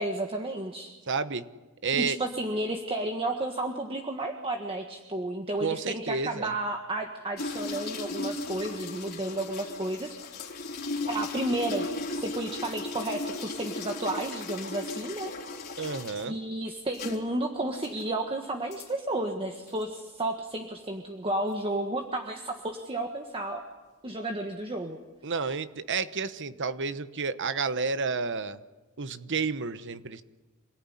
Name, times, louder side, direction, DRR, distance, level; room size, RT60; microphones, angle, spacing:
voice 1, 0.0-0.9 1.9-10.6 11.1-15.3 16.2-23.6 24.0-25.0, right 1 dB, 25° right, 3 dB, 1.6 m, -32 dB
voice 2, 1.1-1.4 1.8-2.2 5.6-6.5 15.8-16.4 25.2-28.6 29.0-30.2, right 4 dB, 55° right, 12 dB, 1.1 m, -30 dB
sound 1, 7.4-16.3 16.9-17.2 17.8-18.0 18.7-18.9 19.7-19.8, left 2 dB, 45° left, 4.1 m, -36 dB
27.0 x 18.5 x 9.9 m, 1.2 s
head